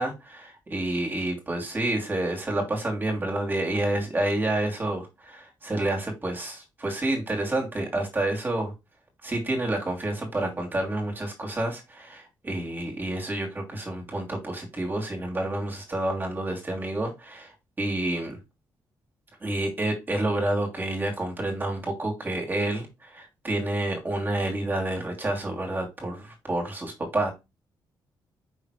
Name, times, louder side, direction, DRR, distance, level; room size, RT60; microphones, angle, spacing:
voice 1, 0.0-8.7 9.2-17.5 17.8-18.4 19.4-27.3, right 1 dB, 25° right, 2.8 m, -29 dB
5.8 x 4.0 x 4.9 m
cardioid pair, 105°, 8 cm